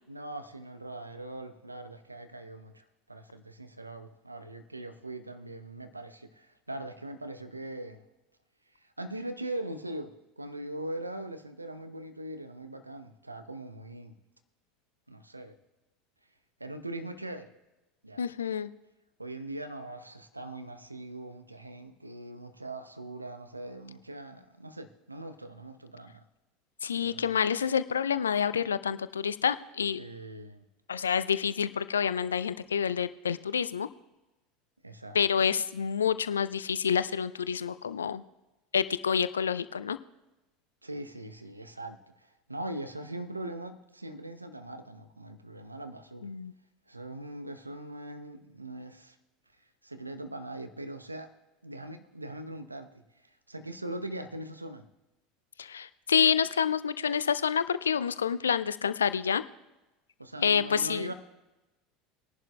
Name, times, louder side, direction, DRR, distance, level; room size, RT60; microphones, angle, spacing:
voice 1, 0.1-8.0 8.8-14.1 15.1-15.6 16.6-17.5 18.0-18.2 19.2-26.2 27.0-27.3 30.0-30.6 34.8-35.5 40.8-46.3 46.9-49.2 49.8-51.3 51.6-52.9 53.2-54.9 60.2-61.1, right 1 dB, 90° right, 8 dB, 0.7 m, -41 dB
voice 2, 18.2-18.7 26.8-30.0 30.9-33.9 35.1-38.2 38.7-40.0 46.2-46.5 55.6-59.4 60.4-61.1, left 7 dB, 75° left, 15 dB, 0.4 m, -28 dB
21.0 x 11.0 x 2.2 m, 1.0 s
figure-of-eight pair, 75°, 0 cm